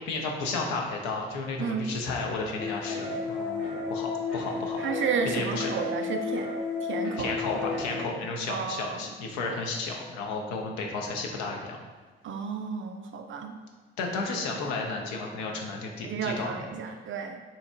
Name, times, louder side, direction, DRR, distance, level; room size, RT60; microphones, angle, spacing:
voice 1, 0.1-4.8 5.3-5.7 7.2-11.8 14.0-16.7, left 3 dB, 65° left, 1 dB, 0.7 m, -33 dB
voice 2, 1.6-2.0 4.8-6.5 6.8-7.3 8.5-9.1 12.2-13.6 16.0-17.4, right 5 dB, 40° right, 5 dB, 0.4 m, -32 dB
sound 1, 2.6-8.0, left 4 dB, 45° left, 1.1 m, -32 dB
3.9 x 2.8 x 3.4 m, 1.3 s
figure-of-eight pair, 40°, 30 cm